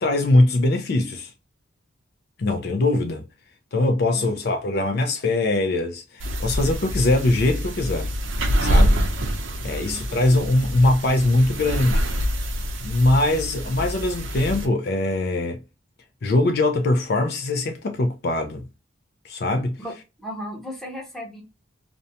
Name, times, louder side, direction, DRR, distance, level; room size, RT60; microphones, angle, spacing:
voice 1, 0.0-1.3 2.4-3.2 3.7-8.1 8.6-9.0 9.6-12.0 12.8-15.6 16.2-18.6 19.2-19.8, left 2 dB, 55° left, 0.4 m, -22 dB
sound 1, 6.2-14.7, equal, 85° right, 0.6 m, -25 dB
voice 2, 9.6-10.3 19.8-19.9 20.2-21.4, equal, ahead, 0.8 m, -36 dB
2.5 x 2.1 x 2.7 m
head